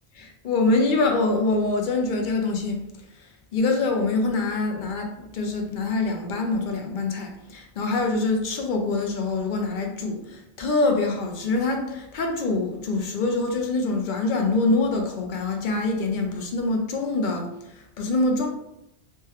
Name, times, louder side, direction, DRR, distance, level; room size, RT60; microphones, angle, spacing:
voice 1, 0.2-18.5, left 3 dB, 60° left, 3 dB, 0.6 m, -25 dB
3.4 x 2.2 x 2.8 m, 0.83 s
omnidirectional pair, 1.1 m